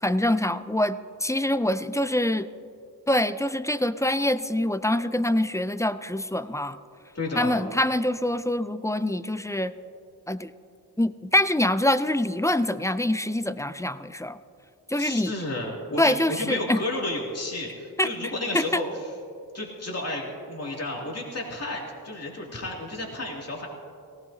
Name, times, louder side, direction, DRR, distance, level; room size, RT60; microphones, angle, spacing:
voice 1, 0.0-2.5 3.1-6.8 7.4-9.7 10.3-10.5 11.0-14.4 14.9-15.3 16.0-16.8 18.0-18.1 18.5-18.8, left 1 dB, 10° left, 13 dB, 0.4 m, -25 dB
voice 2, 7.1-7.6 15.0-18.9 19.5-23.7, left 2 dB, 40° left, -2 dB, 2.7 m, -32 dB
18.0 x 16.5 x 2.8 m, 2.5 s
cardioid pair, 55°, 39 cm